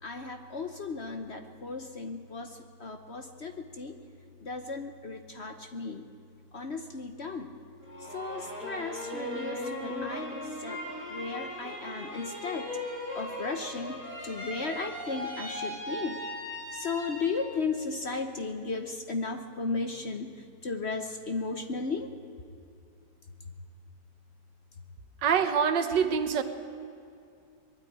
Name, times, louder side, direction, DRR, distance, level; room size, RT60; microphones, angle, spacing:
voice 1, 0.0-4.0 4.4-6.1 6.5-7.6 8.0-10.8 11.1-12.7 13.1-16.2 16.7-22.1, left 4 dB, 45° left, 7 dB, 0.9 m, -35 dB
sound 1, 7.8-17.6 18.1-18.7, left 1 dB, 5° right, 6.9 m, -38 dB
voice 2, 25.2-26.4, right 7 dB, 75° right, 10 dB, 1.7 m, -25 dB
20.5 x 13.0 x 10.0 m, 2.5 s
omnidirectional pair, 1.9 m